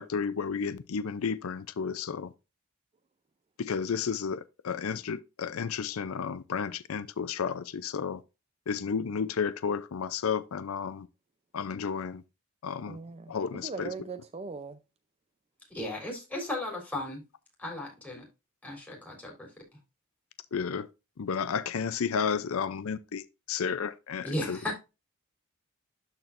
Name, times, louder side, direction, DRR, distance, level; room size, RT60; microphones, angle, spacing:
voice 1, 0.0-2.3 3.6-8.2 8.7-11.1 11.5-12.2 12.6-13.0 13.3-13.9 20.5-20.9 21.2-24.6, left 6 dB, 75° left, 0.5 m, -32 dB
voice 2, 12.9-14.8, right 4 dB, 30° right, 0.5 m, -40 dB
voice 3, 15.7-17.2 17.6-18.2 18.6-19.5 24.2-24.8, left 1 dB, 10° left, 3.5 m, -35 dB
12.5 x 4.3 x 2.5 m
head